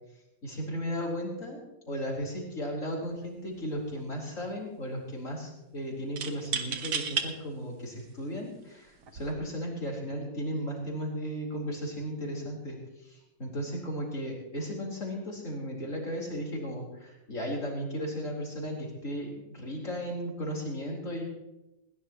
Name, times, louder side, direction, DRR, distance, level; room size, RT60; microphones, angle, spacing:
voice 1, 0.4-21.3, equal, 40° left, -2 dB, 4.7 m, -35 dB
sound 1, 3.0-3.3 3.6-4.2 6.2-7.3 8.0-8.1 9.0-9.3, right 6 dB, 65° right, 1.9 m, -33 dB
20.5 x 18.5 x 3.1 m, 0.95 s
omnidirectional pair, 2.0 m